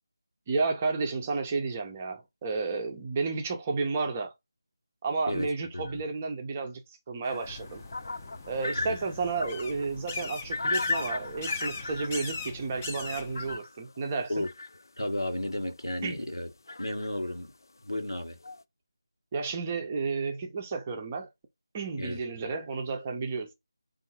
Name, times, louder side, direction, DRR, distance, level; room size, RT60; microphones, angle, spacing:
voice 1, 0.5-4.3 5.0-6.8 7.1-7.8 8.5-14.4 16.0-16.2 19.3-21.3 21.7-23.5, right 4 dB, 20° right, 0.6 m, -32 dB
sound 1, 7.2-9.9 10.5-12.4 13.2-14.0 14.4-14.8 15.6-15.7 15.9-16.0 16.7-17.1 18.0-18.1 18.4-18.6, left 3 dB, 55° left, 0.3 m, -35 dB
sound 2, 7.4-13.6, left 4 dB, 25° left, 0.7 m, -40 dB
voice 2, 15.0-16.5 16.8-17.5 17.8-18.4 22.0-22.2, left 1 dB, 85° left, 1.1 m, -33 dB
3.7 x 2.6 x 4.2 m
figure-of-eight pair, 160°, 2 cm